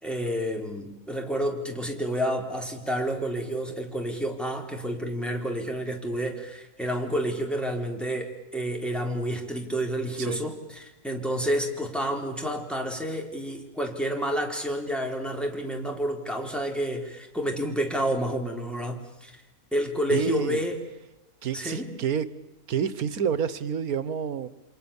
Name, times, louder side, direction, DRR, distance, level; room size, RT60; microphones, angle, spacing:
voice 1, 0.0-19.4 19.7-20.8 21.5-22.0, equal, ahead, 2 dB, 3.7 m, -29 dB
voice 2, 20.1-20.6 21.4-22.3 22.7-24.5, right 8 dB, 90° right, 15 dB, 1.6 m, -28 dB
29.0 x 26.5 x 7.1 m, 0.95 s
omnidirectional pair, 1.5 m